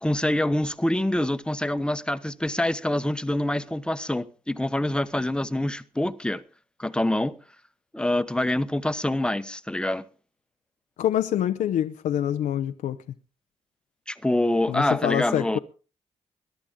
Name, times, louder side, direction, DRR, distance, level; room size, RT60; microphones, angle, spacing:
voice 1, 0.0-6.4 6.8-7.3 7.9-10.0 14.1-15.6, left 1 dB, 5° left, 1.0 m, -25 dB
voice 2, 11.0-13.0 14.7-15.6, left 11 dB, 80° left, 0.7 m, -25 dB
22.0 x 11.5 x 3.7 m
cardioid pair, 80°, 13 cm